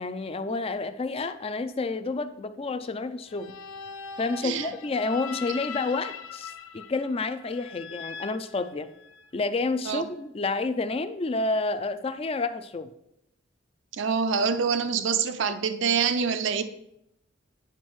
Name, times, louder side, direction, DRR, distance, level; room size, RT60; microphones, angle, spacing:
voice 1, 0.0-3.5 4.2-8.9 9.3-12.9, left 3 dB, 30° left, 11 dB, 0.4 m, -29 dB
sound 1, 3.3-9.3, left 6 dB, 80° left, 0.5 m, -41 dB
voice 2, 4.4-4.7 9.8-10.0 13.9-16.6, right 6 dB, 65° right, 11 dB, 0.5 m, -26 dB
9.0 x 5.3 x 3.1 m, 0.80 s
head